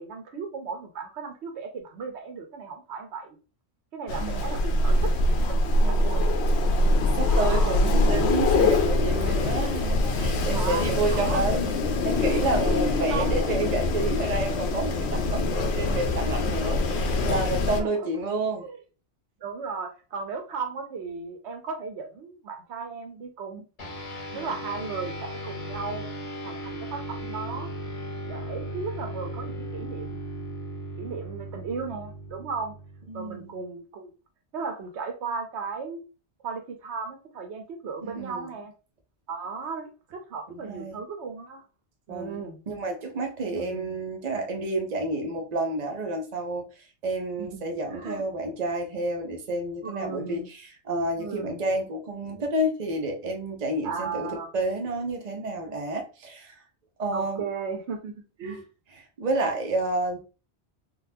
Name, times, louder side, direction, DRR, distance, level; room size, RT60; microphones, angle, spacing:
voice 1, 0.0-3.4 3.9-5.1 5.4-5.6 5.9-6.2 7.2-7.8 9.3-9.5 10.5-11.4 13.1-13.3 17.8-18.1 18.6-18.8 19.4-23.7 24.3-26.1 26.4-27.7 28.3-30.2 31.0-32.7 33.1-34.1 34.5-36.0 36.4-38.7 39.3-41.6 42.1-42.6 43.5-43.9 47.4-48.2 49.8-50.5 51.2-51.6 53.8-54.5 57.1-58.6, right 5 dB, 75° right, 1.0 m, -36 dB
Wind, 4.1-17.8, left 2 dB, 75° left, 0.8 m, -24 dB
voice 2, 4.2-4.6 5.8-6.3 6.8-11.8 12.0-18.7 24.3-24.6 33.1-33.5 38.0-38.5 40.5-41.0 42.1-46.7 47.0-56.6 57.0-57.4 58.4-58.6 59.2-60.2, right 2 dB, 40° right, 0.8 m, -30 dB
sound 1, 23.8-33.5, right 1 dB, 40° left, 0.8 m, -37 dB
3.8 x 2.4 x 2.6 m
omnidirectional pair, 1.1 m